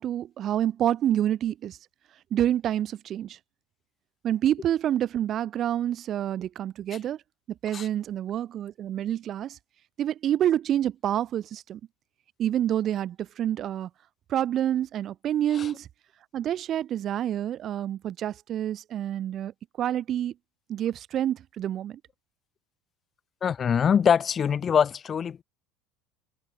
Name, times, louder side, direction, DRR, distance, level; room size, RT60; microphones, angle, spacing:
voice 1, 0.0-1.8 2.3-3.4 4.2-7.2 7.6-9.6 10.0-11.8 12.4-13.9 14.3-15.9 16.3-19.5 19.8-20.3 20.7-22.0, right 11 dB, 45° right, 1.8 m, -27 dB
voice 2, 23.4-25.4, left 7 dB, 35° left, 1.0 m, -23 dB
hypercardioid pair, 85°, 0 cm